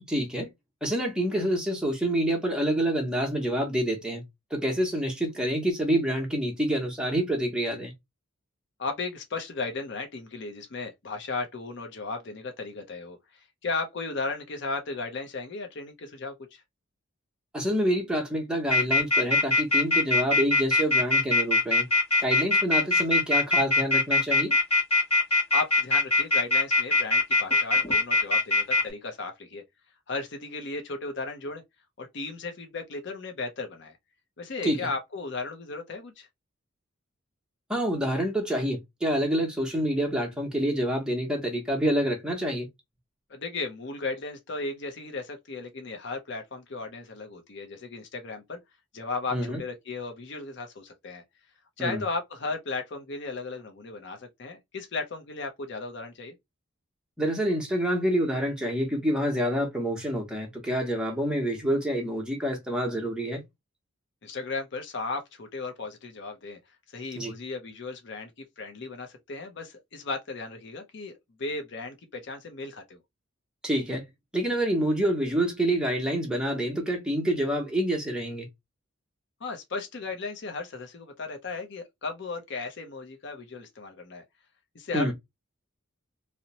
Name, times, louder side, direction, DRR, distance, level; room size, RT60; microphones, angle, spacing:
voice 1, 0.1-0.5 0.8-4.2 4.5-7.9 17.5-21.9 22.2-24.5 34.6-34.9 37.7-42.7 49.3-49.6 51.8-52.0 57.2-63.4 67.2-67.3 73.6-74.0 74.3-78.5 84.9-85.1, right 1 dB, 5° right, 0.7 m, -27 dB
voice 2, 8.8-16.6 25.5-29.6 30.1-31.6 32.0-34.0 34.4-36.3 43.3-48.6 48.9-51.2 51.8-56.3 64.2-66.6 66.9-68.3 68.6-73.0 79.4-84.2 84.7-85.1, left 3 dB, 55° left, 0.6 m, -35 dB
sound 1, 18.7-28.8, left 2 dB, 30° left, 0.8 m, -21 dB
2.7 x 2.0 x 2.7 m
head